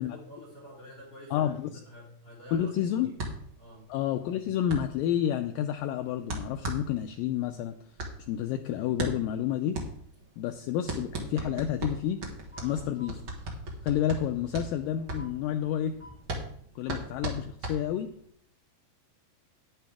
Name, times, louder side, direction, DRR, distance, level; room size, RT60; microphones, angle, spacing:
voice 1, 0.0-2.8 3.0-3.2 3.6-3.8 10.2-10.3 10.7-10.8 12.6-12.8, equal, 30° left, -5 dB, 3.0 m, -48 dB
voice 2, 1.3-1.7 2.5-3.1 3.9-7.8 8.3-9.8 10.4-12.2 12.6-13.2 13.8-16.0 16.8-18.1, left 10 dB, 90° left, 7 dB, 1.9 m, -30 dB
sound 1, 3.2-18.3, right 2 dB, 45° right, 1.8 m, -38 dB
sound 2, 10.0-16.3, left 1 dB, 25° right, 1.8 m, -55 dB
10.5 x 10.0 x 3.5 m, 0.64 s
omnidirectional pair, 4.5 m